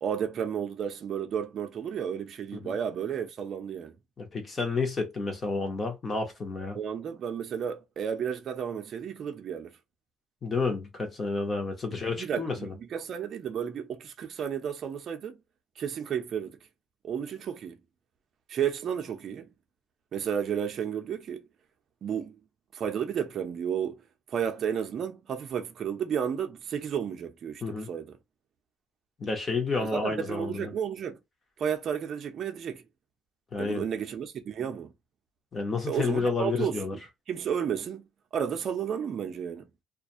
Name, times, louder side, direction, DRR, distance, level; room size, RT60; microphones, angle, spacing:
voice 1, 0.0-3.9 6.7-9.7 11.9-15.4 15.8-16.6 17.0-17.8 18.5-19.5 20.1-21.4 22.0-22.3 22.7-24.0 24.3-28.1 29.8-31.2 31.6-32.8 33.6-34.9 35.8-36.8 37.3-38.1 38.3-39.7, right 8 dB, 45° right, 0.6 m, -32 dB
voice 2, 4.2-6.8 10.4-12.7 27.6-27.9 29.2-30.7 33.5-33.9 35.5-37.0, left 4 dB, 25° left, 0.9 m, -30 dB
2.4 x 2.2 x 2.6 m
cardioid pair, 160°, 0 cm